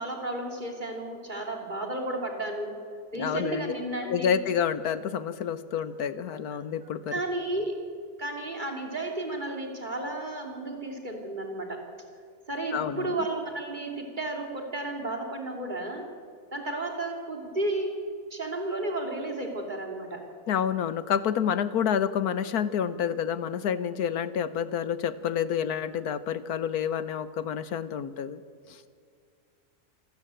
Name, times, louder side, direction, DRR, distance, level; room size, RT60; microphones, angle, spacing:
voice 1, 0.0-2.8 3.1-4.4 7.1-7.8 8.2-11.8 12.5-16.1 16.5-17.9 18.3-20.2, right 2 dB, 30° right, 2 dB, 3.2 m, -33 dB
voice 2, 3.1-3.7 4.0-7.1 12.7-13.1 20.5-28.4, left 8 dB, 80° left, 14 dB, 1.4 m, -28 dB
26.5 x 13.5 x 9.1 m, 2.2 s
omnidirectional pair, 1.6 m